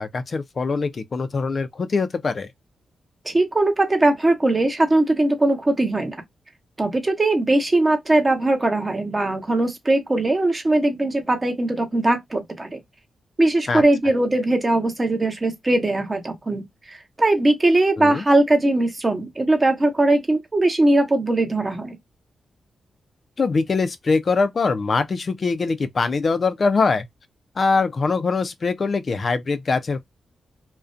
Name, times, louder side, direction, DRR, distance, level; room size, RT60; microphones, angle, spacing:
voice 1, 0.0-2.5 13.7-13.8 18.0-18.2 23.4-27.1 27.6-30.0, left 4 dB, 45° left, 0.3 m, -22 dB
voice 2, 3.2-6.2 6.8-12.8 13.4-22.0, right 2 dB, 25° right, 0.8 m, -20 dB
2.4 x 2.1 x 2.4 m
cardioid pair, 85°, 0 cm